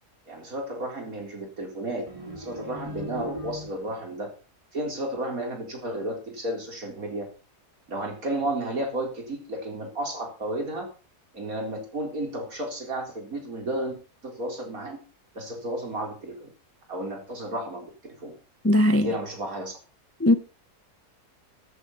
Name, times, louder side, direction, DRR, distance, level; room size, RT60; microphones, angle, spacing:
voice 1, 0.3-2.0 2.4-4.3 4.7-7.2 7.9-10.9 11.3-15.0 15.3-16.5 16.9-18.3 18.9-19.8, right 1 dB, 60° right, 4.4 m, -32 dB
sound 1, 2.1-4.1, equal, 20° right, 2.3 m, -39 dB
voice 2, 18.6-19.1 20.2-20.3, left 1 dB, 15° left, 0.5 m, -18 dB
14.0 x 8.1 x 5.6 m
omnidirectional pair, 1.7 m